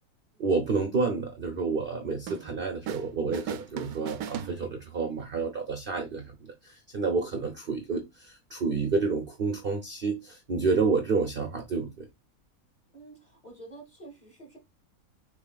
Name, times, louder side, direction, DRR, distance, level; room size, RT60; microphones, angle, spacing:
voice 1, 0.4-12.1, right 4 dB, 45° right, 0.8 m, -29 dB
sound 1, 2.3-3.1 3.3-5.1, right 9 dB, 75° right, 1.1 m, -38 dB
voice 2, 12.9-14.6, right 2 dB, 30° left, 2.7 m, -48 dB
7.1 x 3.1 x 2.4 m
omnidirectional pair, 1.6 m